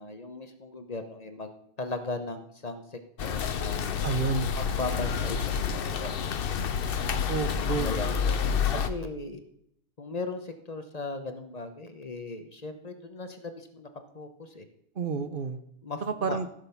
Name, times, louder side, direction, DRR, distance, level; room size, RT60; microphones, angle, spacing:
voice 1, 0.0-3.8 4.6-6.5 6.8-7.1 7.6-8.4 8.7-9.4 10.0-13.9 14.1-14.6 15.8-16.4, left 3 dB, 40° left, 7 dB, 1.1 m, -38 dB
sound 1, 3.2-8.9, left 6 dB, 60° left, 0.9 m, -29 dB
voice 2, 4.0-4.5 7.3-7.9 15.0-15.6 16.0-16.5, right 5 dB, 55° right, 10 dB, 0.9 m, -30 dB
15.5 x 6.6 x 5.6 m, 0.73 s
omnidirectional pair, 1.1 m